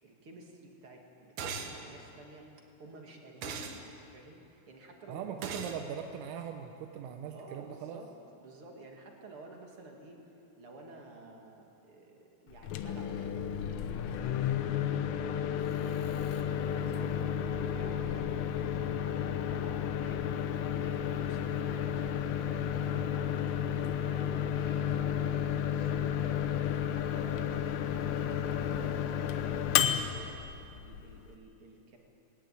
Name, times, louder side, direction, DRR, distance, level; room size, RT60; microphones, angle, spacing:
voice 1, 0.0-2.5 2.8-3.8 4.1-5.8 7.3-8.1 8.4-10.2 10.6-13.4 14.4-17.2 17.7-18.3 18.7-20.4 20.7-21.8 22.2-25.2 25.5-26.0 26.9-29.3 29.6-30.4 30.7-32.0, right 2 dB, 50° right, 1 dB, 1.7 m, -52 dB
sound 1, 1.4-1.8 3.4-3.8 5.4-5.8, right 5 dB, 65° right, 2.7 m, -38 dB
voice 2, 5.1-8.0 22.9-23.1, right 8 dB, 85° right, 5 dB, 3.6 m, -40 dB
Microwave oven, 12.5-31.3, left 9 dB, 80° left, 3.5 m, -32 dB
20.0 x 18.5 x 9.2 m, 2.7 s
omnidirectional pair, 5.8 m